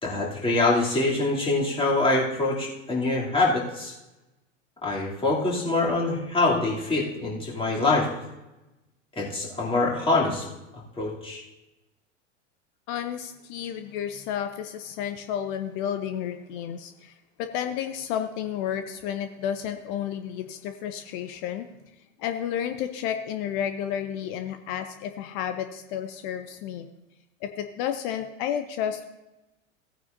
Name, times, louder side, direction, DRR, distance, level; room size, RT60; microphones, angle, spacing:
voice 1, 0.0-3.9 4.8-8.1 9.2-10.4 11.0-11.4, left 2 dB, 15° left, -5 dB, 3.0 m, -24 dB
voice 2, 12.9-21.6 22.2-26.9 27.4-29.1, left 9 dB, 40° left, 8 dB, 0.8 m, -31 dB
16.5 x 9.3 x 2.7 m, 1.0 s
figure-of-eight pair, 90°, 37 cm